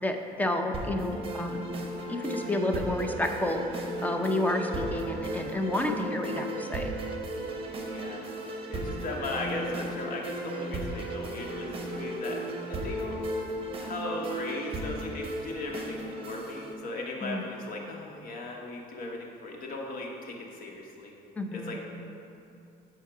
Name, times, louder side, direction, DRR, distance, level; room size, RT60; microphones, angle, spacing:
voice 1, 0.0-1.6 2.1-3.6 4.0-6.9 17.2-17.4 21.4-21.8, left 1 dB, 10° left, 4 dB, 0.6 m, -30 dB
sound 1, 0.7-16.7, right 1 dB, 35° right, 1.0 m, -35 dB
voice 2, 7.8-8.2 8.7-13.2 13.8-21.1 21.5-21.8, left 2 dB, 55° left, 0 dB, 1.3 m, -37 dB
7.8 x 4.6 x 4.8 m, 2.6 s
cardioid pair, 110°, 17 cm